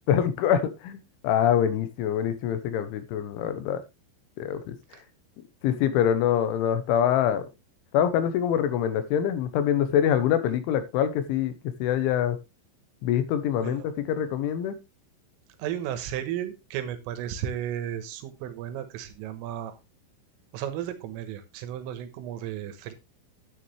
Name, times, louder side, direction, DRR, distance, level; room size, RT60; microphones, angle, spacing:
voice 1, 0.1-3.8 4.4-4.8 5.6-7.5 7.9-11.6 11.8-12.4 13.0-14.8, left 9 dB, 75° left, 11 dB, 3.4 m, -25 dB
voice 2, 15.6-19.8 20.5-22.9, right 10 dB, 90° right, 10 dB, 3.9 m, -34 dB
9.8 x 9.7 x 3.2 m, 0.25 s
omnidirectional pair, 5.7 m